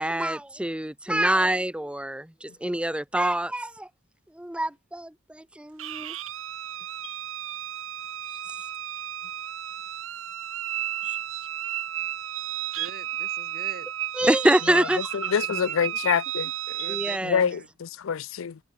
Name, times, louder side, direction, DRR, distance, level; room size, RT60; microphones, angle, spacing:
voice 1, 0.0-3.9 4.4-6.2 14.1-15.3 16.9-17.5, right 1 dB, 5° right, 0.7 m, -26 dB
sound 1, 5.8-17.2, right 12 dB, 70° right, 1.1 m, -33 dB
voice 2, 12.7-13.9 15.2-15.8 16.7-17.7, right 3 dB, 50° right, 4.9 m, -44 dB
voice 3, 15.1-16.5 17.2-18.6, left 7 dB, 70° left, 0.5 m, -26 dB
head